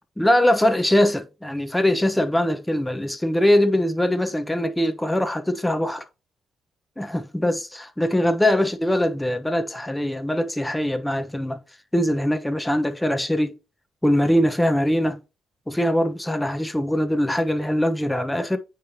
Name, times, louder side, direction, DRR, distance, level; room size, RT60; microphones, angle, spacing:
voice 1, 0.2-6.0 7.0-11.6 11.9-13.6 14.0-15.2 15.7-18.6, left 1 dB, 10° left, 1.1 m, -22 dB
9.2 x 3.5 x 2.9 m
supercardioid pair, 50°, 0 cm